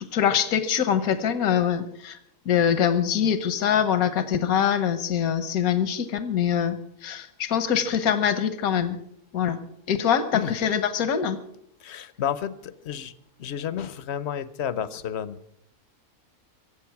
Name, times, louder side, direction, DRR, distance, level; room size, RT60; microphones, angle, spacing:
voice 1, 0.0-2.2 2.4-9.0 9.3-9.6 9.9-11.4, left 8 dB, 80° left, 12 dB, 1.5 m, -24 dB
voice 2, 11.8-13.1 13.4-15.5, left 9 dB, 55° left, 16 dB, 0.9 m, -31 dB
24.0 x 8.0 x 5.9 m, 0.72 s
omnidirectional pair, 1.5 m